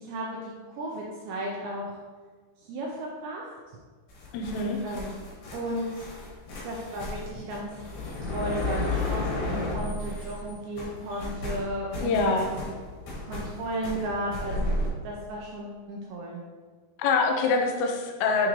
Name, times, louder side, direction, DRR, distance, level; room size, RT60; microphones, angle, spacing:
voice 1, 0.0-2.0 2.6-3.6 4.8-5.3 5.5-6.0 6.6-7.7 8.2-12.4 13.2-16.4, right 1 dB, 90° right, -2 dB, 2.5 m, -34 dB
sound 1, 4.1-10.5 10.8-14.9, left 2 dB, 55° left, 2.7 m, -33 dB
voice 2, 4.3-4.8 12.0-12.5 17.0-18.5, left 4 dB, 85° left, 2 dB, 3.3 m, -25 dB
10.0 x 3.7 x 3.1 m, 1.5 s
omnidirectional pair, 5.8 m